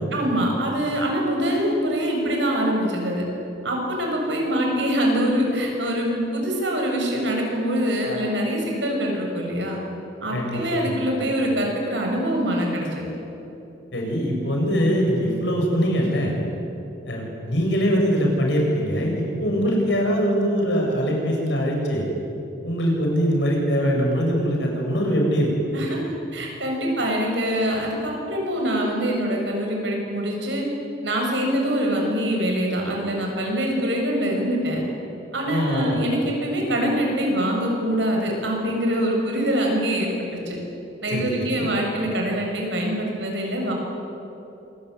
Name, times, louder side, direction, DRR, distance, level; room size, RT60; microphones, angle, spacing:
voice 1, 0.1-3.2 3.6-9.8 10.2-13.1 25.7-30.6 31.0-34.8 35.3-40.6 41.0-43.7, equal, 70° right, 0 dB, 7.1 m, -24 dB
voice 2, 10.3-11.0 13.9-16.3 17.0-22.0 22.6-25.5 35.5-36.0 41.1-41.7, equal, 70° left, 0 dB, 7.7 m, -22 dB
26.5 x 22.5 x 9.7 m, 3.0 s
head